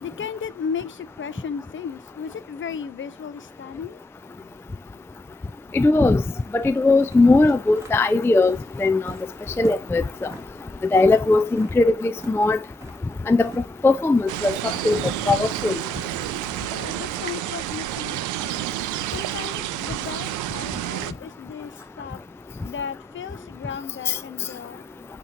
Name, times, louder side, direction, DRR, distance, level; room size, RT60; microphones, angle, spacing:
voice 1, 0.0-4.0 5.5-5.6 9.5-9.6 13.2-13.3 16.7-18.7 19.1-22.2 22.6-24.8, left 7 dB, 40° left, 0.7 m, -35 dB
voice 2, 5.7-6.2 6.5-9.1 9.6-10.3 10.9-12.6 13.3-13.5 13.8-14.6 14.8-15.0 15.3-15.8 24.1-24.2, left 3 dB, 10° left, 0.3 m, -19 dB
sound 1, 6.0-23.4, right 2 dB, 10° right, 2.3 m, -47 dB
sound 2, 14.3-21.1, right 15 dB, 80° right, 0.5 m, -30 dB
8.3 x 3.0 x 5.2 m
cardioid pair, 90°, 30 cm